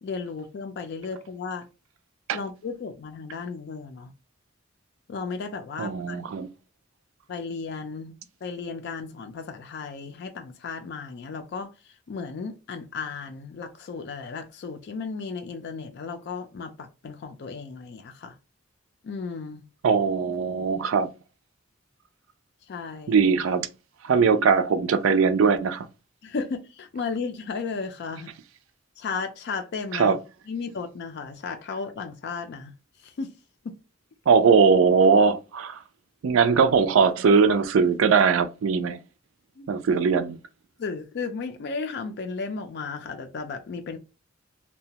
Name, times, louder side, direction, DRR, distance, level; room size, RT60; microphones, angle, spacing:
voice 1, 0.0-1.7 2.3-4.1 5.1-6.2 7.3-18.4 19.0-19.6 22.7-23.2 26.2-28.3 29.0-30.2 30.5-32.7 33.0-33.3 33.6-33.8 39.6-39.7 40.8-44.0, left 4 dB, 60° left, 0.4 m, -34 dB
voice 2, 5.8-6.5 19.8-21.1 23.1-23.7 24.0-25.9 29.9-30.2 34.3-35.8 36.2-39.0 39.7-40.4, right 5 dB, 80° right, 0.4 m, -20 dB
2.8 x 2.2 x 2.7 m
head